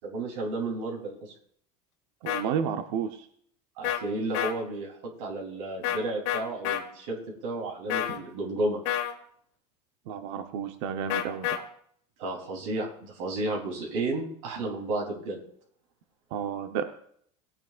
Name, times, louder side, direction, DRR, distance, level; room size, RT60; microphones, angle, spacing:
voice 1, 0.0-1.3 3.8-8.8 12.2-15.4, right 2 dB, 85° right, -1 dB, 3.6 m, -32 dB
voice 2, 2.2-3.3 10.1-11.6 16.3-16.8, right 8 dB, 70° right, 7 dB, 1.0 m, -31 dB
sound 1, 2.3-2.4 3.8-4.0 4.3-4.5 5.8-6.0 6.3-6.8 7.9-8.2 8.9-9.1 11.1-11.6, left 12 dB, 70° left, 1.6 m, -28 dB
19.0 x 9.0 x 2.5 m, 0.62 s
cardioid pair, 150°, 16 cm